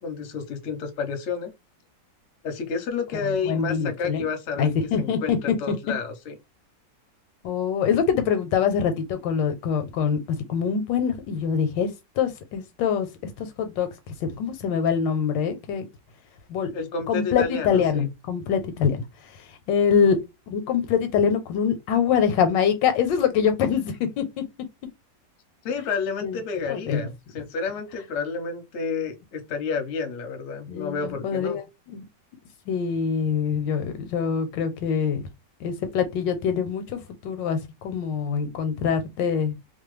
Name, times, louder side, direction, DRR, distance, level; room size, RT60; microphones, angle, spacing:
voice 1, 0.0-1.5 2.4-6.4 16.7-18.1 25.6-31.6, left 5 dB, 55° left, 0.8 m, -30 dB
voice 2, 3.2-4.2 4.6-5.7 7.4-11.9 12.2-13.9 14.2-15.8 16.5-16.7 17.1-19.0 19.7-20.2 20.5-24.4 26.2-26.4 26.7-27.1 30.7-32.0 32.7-35.2 35.6-37.6 37.8-39.5, left 7 dB, 85° left, 1.3 m, -24 dB
2.9 x 2.2 x 3.1 m
omnidirectional pair, 2.0 m